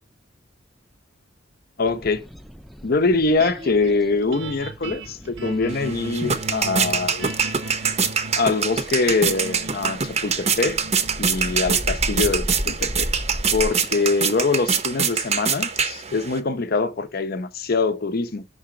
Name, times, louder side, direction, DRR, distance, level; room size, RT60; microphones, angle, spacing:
voice 1, 1.8-2.2 2.8-7.3 8.4-10.8 11.2-13.1 13.5-18.5, left 3 dB, 50° left, 0.7 m, -23 dB
sound 1, 1.9-13.7, equal, ahead, 0.3 m, -36 dB
sound 2, 3.4-15.7, right 1 dB, 75° right, 1.0 m, -38 dB
sound 3, 5.7-16.4, right 6 dB, 35° right, 0.7 m, -24 dB
5.8 x 4.0 x 5.0 m
head